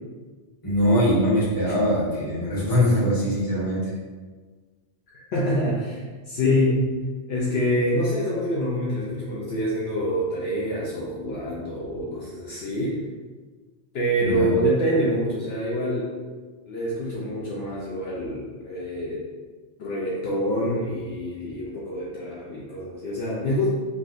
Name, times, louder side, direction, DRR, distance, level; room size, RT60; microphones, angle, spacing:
voice 1, 0.6-3.9 14.2-14.5, equal, 20° left, -9 dB, 0.9 m, -22 dB
voice 2, 5.1-6.8 7.3-13.0 13.9-16.1 16.7-19.2 19.8-23.7, equal, 65° left, -6 dB, 0.8 m, -26 dB
3.5 x 2.3 x 2.5 m, 1.4 s
omnidirectional pair, 1.2 m